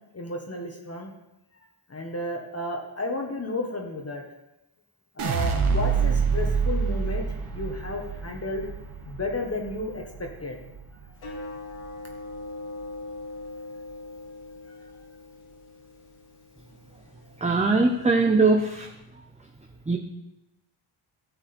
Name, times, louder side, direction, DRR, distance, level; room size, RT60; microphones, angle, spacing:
voice 1, 0.1-1.1 1.9-4.2 5.1-8.7 9.0-10.6 14.7-14.9, left 2 dB, 30° left, 0 dB, 1.5 m, -33 dB
sound 1, 5.2-11.4 11.7-12.3, right 5 dB, 80° right, 1.5 m, -27 dB
sound 2, 11.2-18.1, left 2 dB, 80° left, 2.3 m, -41 dB
voice 2, 17.4-18.9 19.9-20.0, right 3 dB, 15° right, 3 dB, 0.8 m, -21 dB
13.5 x 7.6 x 4.4 m, 0.92 s
cardioid pair, 110°, 49 cm